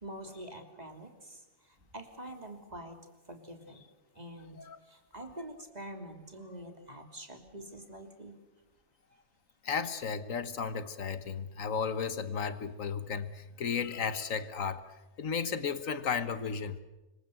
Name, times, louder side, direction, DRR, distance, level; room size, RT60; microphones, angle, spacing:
voice 1, 0.0-3.0 3.3-3.9 4.1-8.4 9.1-9.2, right 1 dB, 30° right, 5 dB, 3.1 m, -46 dB
voice 2, 9.6-16.8, left 6 dB, 90° left, 12 dB, 1.7 m, -34 dB
26.0 x 23.5 x 7.9 m, 1.1 s
omnidirectional pair, 1.3 m